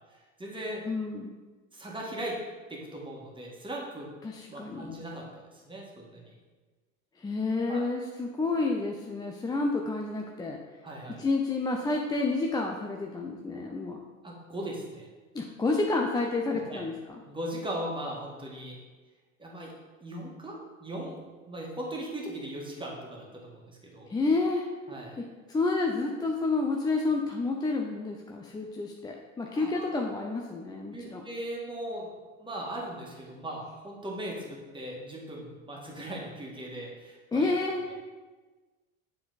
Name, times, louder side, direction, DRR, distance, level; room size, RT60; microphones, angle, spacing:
voice 1, 0.1-0.9 1.7-2.4 2.7-4.1 4.5-6.3 7.7-7.9 10.8-11.2 14.2-15.1 16.7-16.8 17.3-18.8 19.4-19.7 20.0-24.1 24.9-25.2 29.5-29.9 30.9-32.1 32.4-37.5, right 1 dB, 15° right, -2 dB, 1.8 m, -39 dB
voice 2, 0.8-1.3 4.2-5.0 7.2-10.6 11.2-14.0 15.3-16.9 24.1-24.7 25.2-31.2 37.3-37.9, left 3 dB, 10° left, 1 dB, 0.5 m, -29 dB
7.3 x 4.4 x 4.0 m, 1.3 s
hypercardioid pair, 85°, 38 cm